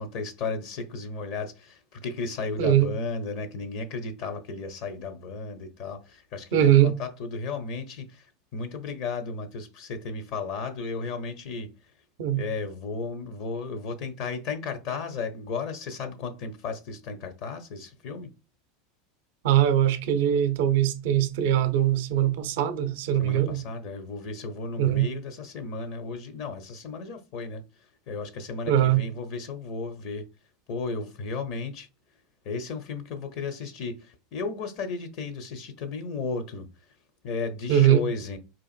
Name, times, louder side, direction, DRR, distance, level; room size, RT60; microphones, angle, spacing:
voice 1, 0.0-8.3 8.5-11.7 12.4-18.3 23.2-27.6 28.1-30.3 30.7-31.9 32.4-36.7 37.2-38.4, left 4 dB, 55° left, 0.6 m, -34 dB
voice 2, 6.5-7.0 12.2-12.4 19.4-23.6 24.8-25.1 28.7-29.0 37.7-38.0, right 11 dB, 60° right, 0.5 m, -21 dB
4.1 x 2.5 x 2.4 m
figure-of-eight pair, 80°, 0 cm